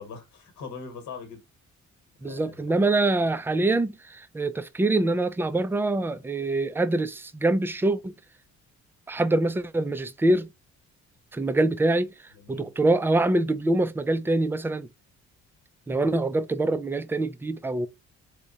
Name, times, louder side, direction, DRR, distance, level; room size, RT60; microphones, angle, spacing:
voice 1, 0.0-1.4 2.2-2.7 12.3-12.7, left 5 dB, 70° left, 1.2 m, -41 dB
voice 2, 2.2-8.1 9.1-10.5 11.3-12.1 12.5-14.9 15.9-17.9, right 2 dB, 10° right, 0.3 m, -24 dB
3.5 x 2.1 x 3.8 m
cardioid pair, 90°, 30 cm